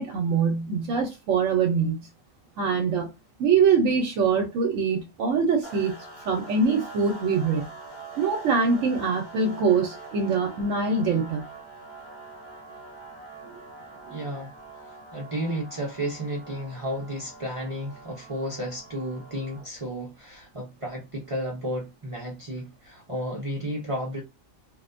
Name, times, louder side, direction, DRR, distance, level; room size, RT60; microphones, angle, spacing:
voice 1, 0.0-2.1 2.6-3.1 3.4-5.9 6.2-7.7 8.2-11.5 13.4-13.5 14.0-14.2, right 5 dB, 75° right, 0.9 m, -23 dB
sound 1, 5.6-19.8, right 3 dB, 40° left, 1.0 m, -44 dB
voice 2, 14.1-14.5 15.1-24.2, equal, 40° right, 0.4 m, -32 dB
2.4 x 2.1 x 2.4 m
omnidirectional pair, 1.4 m